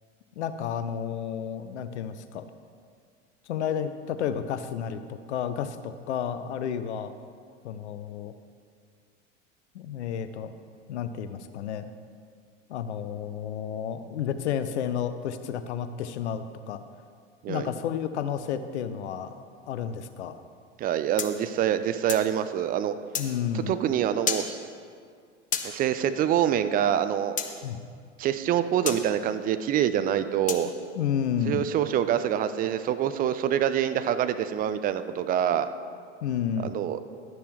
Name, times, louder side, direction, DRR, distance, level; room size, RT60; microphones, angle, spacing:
voice 1, 0.4-2.5 3.5-7.1 7.6-8.3 9.7-10.5 10.9-11.9 12.7-16.8 17.5-20.4 23.2-23.7 27.6-27.8 30.6-31.7 36.2-36.7, left 8 dB, 65° left, 11 dB, 0.7 m, -31 dB
voice 2, 20.8-22.9 23.5-24.4 25.6-27.4 28.2-30.7 31.4-35.7 36.6-37.0, right 10 dB, 25° right, 11 dB, 0.4 m, -25 dB
sound 1, 21.2-22.3 23.1-23.3 24.3-24.5 25.5-25.7 27.4-27.5 28.9-29.0 30.5-30.7, left 7 dB, 20° left, 0.8 m, -30 dB
12.0 x 9.9 x 3.2 m, 2.1 s
figure-of-eight pair, 80°, 37 cm